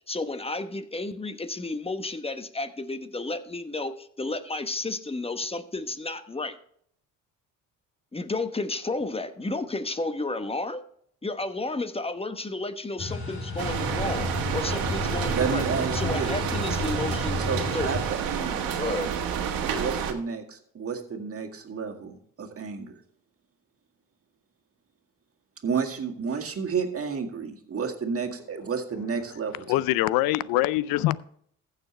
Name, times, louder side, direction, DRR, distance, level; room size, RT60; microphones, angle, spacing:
voice 1, 0.1-6.6 8.1-10.8 11.2-17.4 17.7-17.9 18.8-19.1, left 2 dB, 15° left, 1.0 m, -32 dB
sound 1, 13.0-18.1, left 3 dB, 35° left, 4.2 m, -32 dB
sound 2, 13.6-20.1, right 8 dB, 70° right, 1.6 m, -29 dB
voice 2, 15.3-16.5 17.4-19.1 19.7-23.0 25.6-29.6, right 6 dB, 40° right, 2.0 m, -31 dB
voice 3, 29.7-31.2, left 16 dB, 75° left, 0.5 m, -23 dB
15.0 x 6.8 x 3.3 m
supercardioid pair, 65°, 36 cm